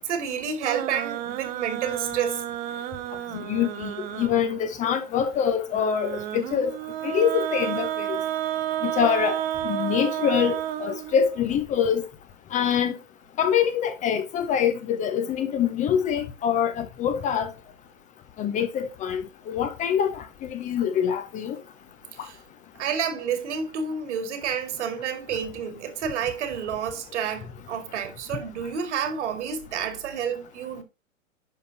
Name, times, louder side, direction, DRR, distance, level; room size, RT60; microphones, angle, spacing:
voice 1, 0.0-2.4 22.2-22.4 22.8-30.8, right 7 dB, 60° right, 2.2 m, -29 dB
sound 1, 0.6-4.6 5.7-11.5, right 11 dB, 20° right, 0.7 m, -31 dB
voice 2, 3.3-6.8 7.0-8.2 8.8-12.1 12.5-13.0 13.4-17.5 18.4-21.6, left 8 dB, 20° left, 0.7 m, -25 dB
10.5 x 5.1 x 2.8 m
hypercardioid pair, 115°, 40 cm